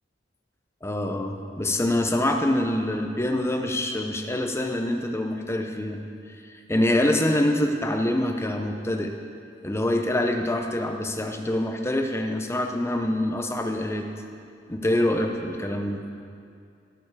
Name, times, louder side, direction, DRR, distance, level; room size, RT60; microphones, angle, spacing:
voice 1, 0.8-6.0 6.5-9.1 9.6-14.1 14.7-16.0, left 1 dB, 15° left, 4 dB, 0.7 m, -25 dB
16.5 x 6.9 x 4.8 m, 2.4 s
head